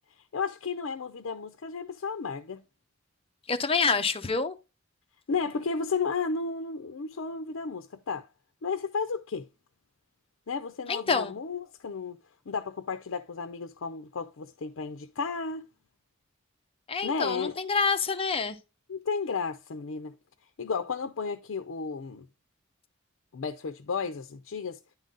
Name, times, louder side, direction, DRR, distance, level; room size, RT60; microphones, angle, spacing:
voice 1, 0.2-2.6 5.3-8.3 8.6-9.5 10.5-12.2 12.5-15.7 17.0-17.6 18.9-20.1 20.6-22.3 23.3-24.8, left 5 dB, 80° left, 0.5 m, -33 dB
voice 2, 3.5-4.5 10.9-11.3 16.9-18.6, left 4 dB, 30° left, 0.7 m, -27 dB
10.0 x 3.9 x 3.8 m
head